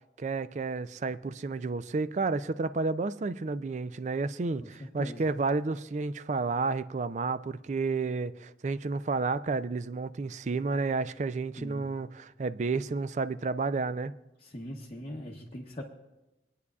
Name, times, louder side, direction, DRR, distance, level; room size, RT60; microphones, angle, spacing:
voice 1, 0.2-14.1, right 4 dB, 40° right, 0.4 m, -31 dB
voice 2, 4.6-5.2 11.6-11.9 14.4-15.8, equal, 35° left, 0.8 m, -41 dB
24.5 x 9.6 x 2.4 m
head